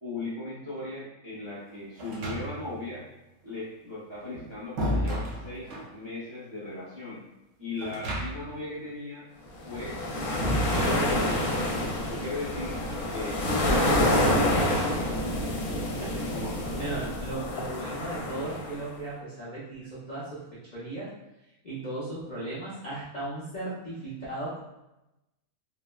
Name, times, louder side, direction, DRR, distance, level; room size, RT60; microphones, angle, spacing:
voice 1, 0.0-3.0 3.4-7.2 7.6-9.3 9.6-10.0 10.2-11.4 12.0-12.8 13.1-14.6 16.3-16.8, left 2 dB, 35° right, -9 dB, 0.4 m, -38 dB
sound 1, 2.0-2.8 4.1-5.9 7.8-8.6 8.9-9.0 10.4-11.5, equal, 65° right, 0.8 m, -32 dB
sound 2, 9.6-18.9, left 1 dB, 70° left, 1.0 m, -28 dB
voice 2, 16.8-20.4 20.7-21.1 21.6-24.6, right 2 dB, 55° left, -10 dB, 0.5 m, -36 dB
3.4 x 2.0 x 2.2 m, 0.93 s
omnidirectional pair, 1.6 m